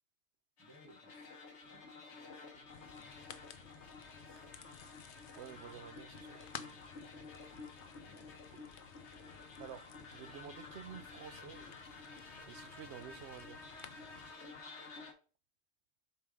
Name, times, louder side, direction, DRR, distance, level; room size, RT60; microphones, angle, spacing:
sound 1, 0.6-15.1, left 3 dB, 85° left, 1.5 m, -52 dB
voice 1, 0.6-1.3 1.6-3.1 8.0-8.4, equal, 20° right, 1.4 m, -64 dB
sound 2, 2.7-14.3, left 8 dB, 60° left, 0.7 m, -55 dB
voice 2, 5.4-6.8 8.5-8.6 9.6-11.7 12.4-13.6, right 8 dB, 75° right, 0.9 m, -51 dB
6.9 x 3.6 x 5.0 m
omnidirectional pair, 1.1 m